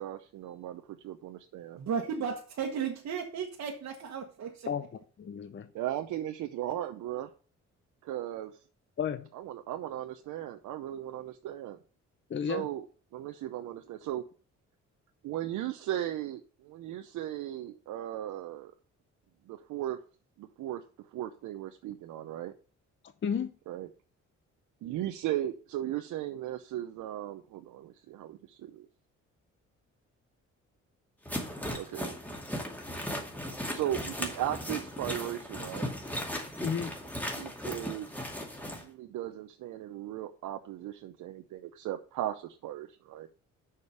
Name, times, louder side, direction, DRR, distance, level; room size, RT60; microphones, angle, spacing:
voice 1, 0.0-1.8 5.7-7.3 8.0-8.5 9.4-11.8 12.4-12.8 13.1-14.2 15.2-18.7 19.5-20.0 20.4-20.8 21.1-22.5 23.7-23.9 24.8-28.9 31.5-32.1 33.7-35.9 37.3-38.1 38.8-43.3, right 12 dB, 80° right, 0.7 m, -37 dB
voice 2, 1.7-4.7, right 6 dB, 60° right, 1.3 m, -34 dB
voice 3, 5.2-5.7 9.0-9.3 12.3-12.7 23.2-23.5 36.6-36.9, left 7 dB, 40° left, 0.7 m, -32 dB
sound 1, 31.3-38.8, equal, 5° left, 2.3 m, -37 dB
6.6 x 5.2 x 6.8 m
cardioid pair, 90°, 30 cm